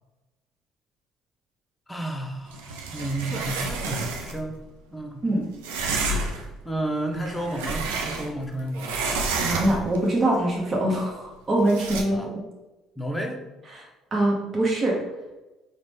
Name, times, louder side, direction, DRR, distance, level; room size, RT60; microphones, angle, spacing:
voice 1, 1.9-4.6 4.9-5.2 6.6-9.1 12.1-12.3 13.0-13.4, right 1 dB, 10° left, 2 dB, 0.7 m, -31 dB
sound 1, 2.5-4.4 5.6-6.5 7.1-8.5 8.7-10.0 11.7-12.0, right 3 dB, 90° right, 0.4 m, -29 dB
voice 2, 9.4-12.3 13.7-13.9 14.1-15.0, right 1 dB, 35° right, -3 dB, 0.9 m, -23 dB
3.9 x 2.2 x 3.3 m, 1.1 s
hypercardioid pair, 65°, 0 cm